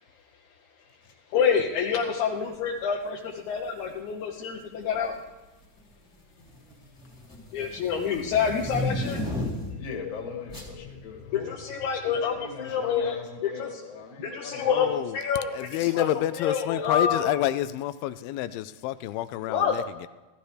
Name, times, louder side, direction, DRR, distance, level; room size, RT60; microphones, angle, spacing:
voice 1, 1.3-5.2 7.5-9.2 11.3-13.2 13.4-13.7 14.2-16.1 16.4-17.3 19.5-19.8, left 7 dB, 70° left, 0 dB, 2.0 m, -27 dB
sound 1, 3.6-3.9 4.8-5.3 5.6-9.9 10.5-10.7, left 1 dB, 10° left, 2.2 m, -34 dB
voice 2, 9.8-11.8 12.1-14.9, left 6 dB, 40° left, 0 dB, 2.2 m, -39 dB
voice 3, 14.7-15.2 15.5-20.1, left 13 dB, 85° left, 13 dB, 2.4 m, -29 dB
15.5 x 14.5 x 3.3 m, 1.2 s
omnidirectional pair, 4.2 m